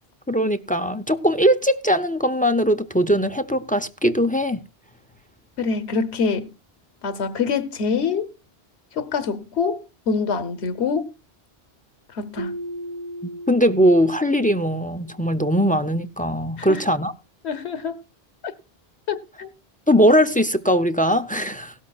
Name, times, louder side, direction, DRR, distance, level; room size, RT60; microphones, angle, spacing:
voice 1, 0.3-4.6 13.5-17.1 19.9-21.7, equal, 10° left, 0.4 m, -20 dB
voice 2, 5.6-6.5 7.0-8.3 8.9-11.1 12.1-12.6 16.6-16.8 17.4-17.9 19.1-19.5, left 5 dB, 80° left, 1.2 m, -25 dB
Keyboard (musical), 12.4-15.2, equal, 25° right, 3.1 m, -36 dB
17.0 x 12.5 x 2.4 m
omnidirectional pair, 1.1 m